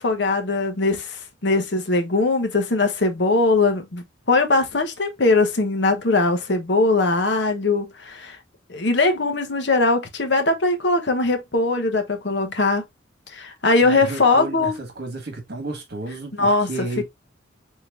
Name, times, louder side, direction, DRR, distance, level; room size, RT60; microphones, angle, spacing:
voice 1, 0.0-8.4 8.7-12.8 13.3-14.7 16.4-16.7, left 3 dB, 60° left, 1.0 m, -20 dB
voice 2, 13.8-17.0, right 2 dB, 55° right, 1.7 m, -32 dB
4.6 x 3.7 x 2.5 m
head